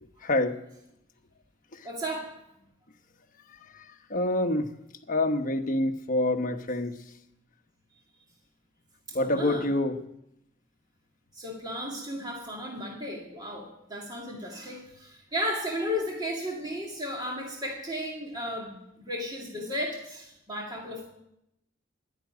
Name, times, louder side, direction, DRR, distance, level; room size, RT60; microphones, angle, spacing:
voice 1, 0.2-0.6 3.7-3.8 4.1-4.7 5.1-6.9 9.1-10.0, left 1 dB, 45° left, 4 dB, 1.2 m, -26 dB
voice 2, 1.8-2.3 9.1-9.7 11.3-18.8 19.0-21.1, equal, 20° right, -2 dB, 2.4 m, -34 dB
12.0 x 10.0 x 9.1 m, 0.81 s
head